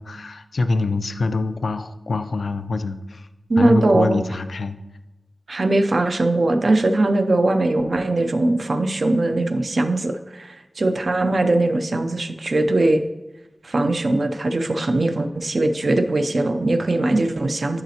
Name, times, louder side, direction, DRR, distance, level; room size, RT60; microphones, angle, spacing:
voice 1, 0.0-3.3 3.6-4.8, left 3 dB, 80° left, 10 dB, 0.3 m, -25 dB
voice 2, 3.5-4.3 5.5-13.0 13.6-17.8, right 2 dB, 60° right, 7 dB, 0.5 m, -20 dB
10.5 x 4.0 x 2.8 m, 1.0 s
wide cardioid pair, 90°, 0 cm